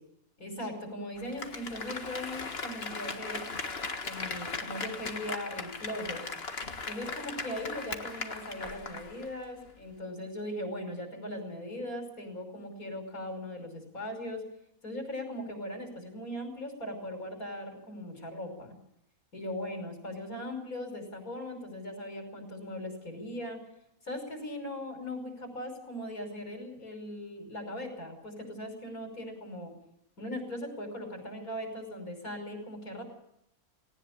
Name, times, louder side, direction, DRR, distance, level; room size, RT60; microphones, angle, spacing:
voice 1, 0.4-3.5 4.1-6.2 6.9-14.4 14.8-18.7 19.3-23.6 24.0-29.7 30.2-33.0, left 1 dB, 70° left, 5 dB, 6.0 m, -39 dB
Applause, 1.2-9.4 9.7-9.8, left 4 dB, 45° left, 1.8 m, -38 dB
19.5 x 18.5 x 8.7 m, 0.77 s
omnidirectional pair, 1.5 m